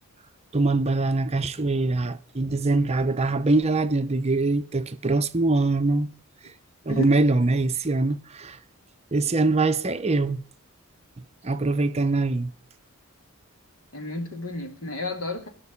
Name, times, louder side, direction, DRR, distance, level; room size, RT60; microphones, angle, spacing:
voice 1, 0.5-6.1 6.4-6.5 6.9-8.6 9.1-10.4 11.4-12.5, right 2 dB, 30° right, 0.7 m, -23 dB
voice 2, 13.9-15.5, left 1 dB, 75° left, 3.1 m, -31 dB
17.5 x 5.9 x 9.8 m
head